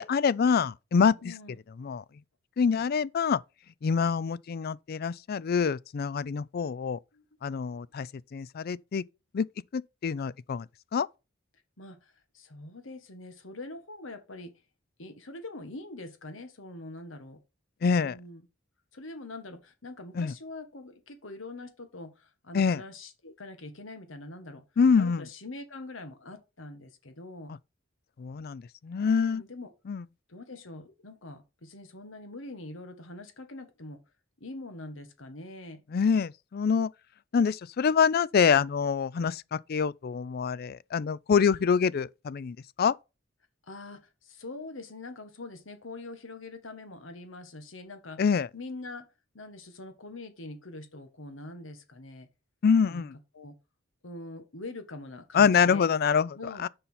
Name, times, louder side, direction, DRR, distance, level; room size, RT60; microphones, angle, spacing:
voice 1, 0.0-1.2 1.8-2.0 2.6-3.4 3.8-7.0 7.4-9.0 9.3-9.5 9.7-10.7 10.9-11.1 17.8-18.2 20.2-20.3 22.5-22.8 24.8-25.2 28.2-29.4 29.9-30.0 35.9-36.9 37.3-42.9 48.2-48.5 52.6-53.1 55.3-56.7, left 6 dB, 50° left, 0.4 m, -25 dB
voice 2, 1.2-1.6 2.6-2.8 7.1-7.8 11.8-14.5 15.0-17.4 18.0-18.4 18.9-24.6 24.9-27.5 29.2-29.7 30.3-34.0 34.4-35.8 43.7-48.2 48.5-49.1 49.3-52.3 52.9-53.1 53.3-53.5 54.0-55.9 56.3-56.6, left 2 dB, 90° left, 1.6 m, -44 dB
6.9 x 5.5 x 5.7 m
head